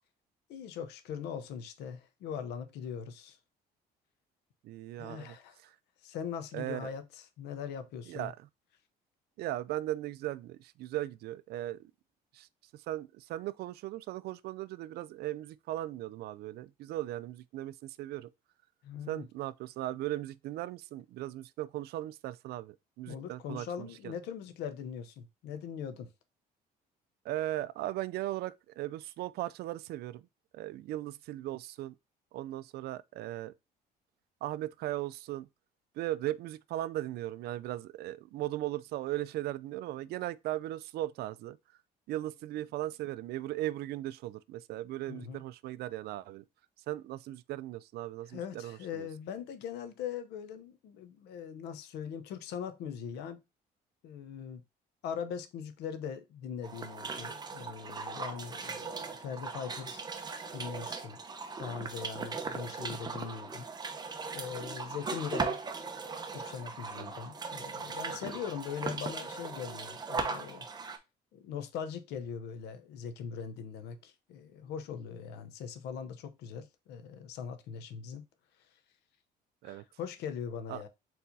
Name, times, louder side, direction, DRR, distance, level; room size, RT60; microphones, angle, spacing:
voice 1, 0.5-3.4 5.0-5.6 6.0-8.3 18.8-19.3 23.1-26.1 45.1-45.4 48.3-53.4 54.0-54.6 55.0-60.1 60.5-61.2 61.6-63.7 64.3-65.6 66.3-70.7 71.3-78.3 79.6-80.9, left 7 dB, 80° left, 0.7 m, -41 dB
voice 2, 4.6-5.4 5.6-5.8 6.5-6.9 8.1-8.4 9.4-11.9 12.3-12.5 12.7-18.3 19.1-24.1 27.2-30.3 30.5-31.9 32.3-33.5 34.4-35.5 36.0-41.6 42.1-46.4 46.9-49.1 66.9-67.1 79.6-79.8 80.7-80.8, right 15 dB, 70° right, 0.4 m, -38 dB
sound 1, 56.6-71.0, right 4 dB, 25° right, 0.7 m, -39 dB
4.4 x 4.1 x 2.7 m
cardioid pair, 110°, 17 cm